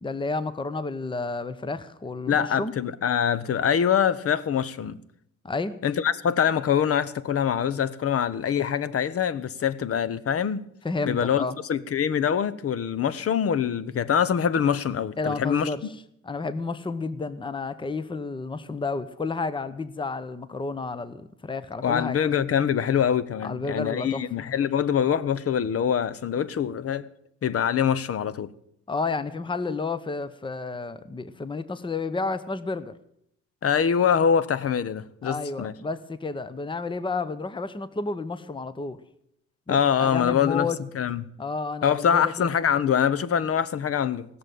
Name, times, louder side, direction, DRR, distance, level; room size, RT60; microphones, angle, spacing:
voice 1, 0.0-2.7 5.4-5.7 10.8-11.6 15.2-15.8 16.2-22.2 23.4-24.2 28.9-32.9 35.2-39.0 39.7-40.8 41.4-42.5, left 3 dB, 15° left, 0.9 m, -31 dB
voice 2, 2.3-5.0 5.8-10.6 11.1-11.4 11.7-15.7 21.8-27.1 27.4-28.5 33.6-35.7 39.7-41.2 41.8-44.3, left 8 dB, 50° left, 0.9 m, -24 dB
17.0 x 6.9 x 9.2 m
cardioid pair, 90°, 30 cm